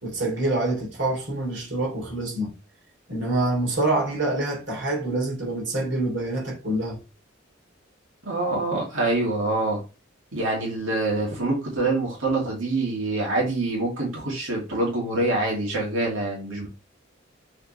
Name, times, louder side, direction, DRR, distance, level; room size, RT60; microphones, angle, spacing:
voice 1, 0.0-2.5 3.1-7.0, right 2 dB, 60° right, 2.9 m, -26 dB
voice 2, 8.2-9.8 10.3-16.7, right 2 dB, 90° right, 2.5 m, -25 dB
6.9 x 4.3 x 3.2 m
head